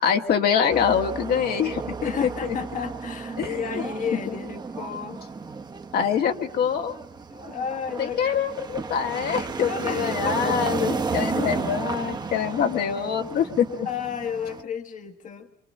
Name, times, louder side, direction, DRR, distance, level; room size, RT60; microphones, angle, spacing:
voice 1, 0.0-2.0 2.2-2.6 3.4-3.8 5.9-7.0 8.0-13.9, left 7 dB, 65° left, 4 dB, 1.9 m, -25 dB
sound 1, 0.7-14.6, right 4 dB, 25° right, 1.2 m, -33 dB
voice 2, 2.0-5.2 7.3-8.4 9.7-10.6 11.4-11.6 13.8-15.6, left 7 dB, 45° left, 5 dB, 1.5 m, -32 dB
27.5 x 24.5 x 5.5 m, 0.72 s
cardioid pair, 110°, 17 cm